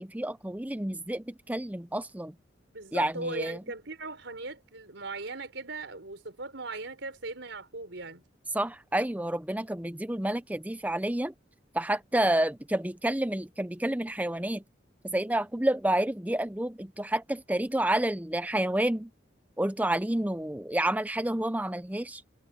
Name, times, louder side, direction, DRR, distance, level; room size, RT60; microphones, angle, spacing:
voice 1, 0.0-2.3 2.9-3.6 8.5-11.3 11.7-14.6 15.0-19.1 19.6-22.2, right 1 dB, 10° right, 0.6 m, -29 dB
voice 2, 2.7-8.2, right 3 dB, 70° right, 4.5 m, -38 dB
head